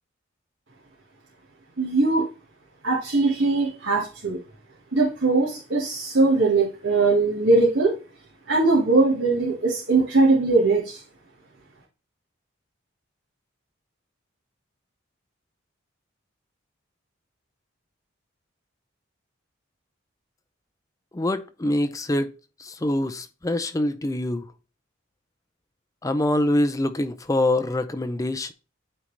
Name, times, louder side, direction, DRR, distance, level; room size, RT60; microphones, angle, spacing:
voice 1, 1.8-2.3 2.8-4.4 4.9-8.0 8.5-11.0, right 3 dB, 65° right, 1.5 m, -20 dB
voice 2, 21.1-22.3 22.6-24.4 26.0-28.5, left 1 dB, 15° left, 0.5 m, -24 dB
8.9 x 3.9 x 3.2 m
head